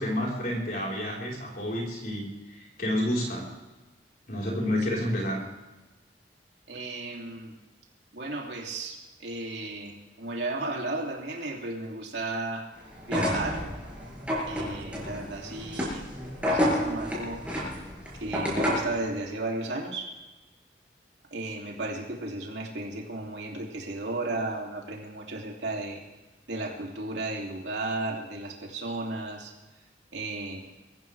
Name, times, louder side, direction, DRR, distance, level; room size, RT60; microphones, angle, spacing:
voice 1, 0.0-3.5 4.3-5.4, left 1 dB, 55° left, -3 dB, 4.3 m, -30 dB
voice 2, 6.7-7.6 8.1-12.7 13.1-13.7 14.5-16.1 16.5-17.4 18.2-20.1 21.3-26.0 26.5-29.5 30.1-30.6, right 2 dB, 85° right, 0 dB, 2.8 m, -34 dB
sound 1, 13.0-19.0, equal, 5° right, 6.2 m, -30 dB
24.0 x 15.0 x 3.4 m, 1.1 s
head